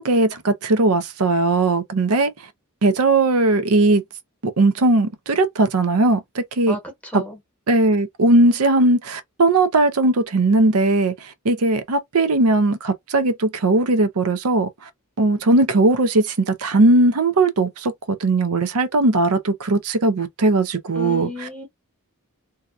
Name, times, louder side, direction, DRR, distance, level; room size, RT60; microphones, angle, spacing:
voice 1, 0.0-2.3 2.8-4.0 4.4-6.8 7.1-7.2 7.7-11.1 11.4-14.7 15.2-21.3, right 2 dB, 90° right, 0.6 m, -18 dB
voice 2, 6.7-7.4 20.9-21.7, left 1 dB, 5° left, 1.0 m, -32 dB
2.7 x 2.3 x 2.4 m
head